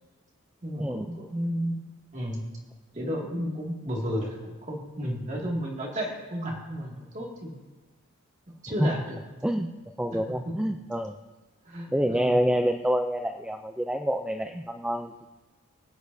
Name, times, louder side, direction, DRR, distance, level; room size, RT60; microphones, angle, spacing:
voice 1, 0.6-1.7 2.1-2.4 2.9-7.5 8.6-9.2 9.5-9.7 10.1-10.2 10.4-10.5 11.7-12.4, equal, 35° right, -2 dB, 2.1 m, -32 dB
voice 2, 10.0-11.2 11.9-15.2, equal, 5° right, 5 dB, 0.3 m, -27 dB
25.0 x 8.3 x 2.7 m, 1.3 s
head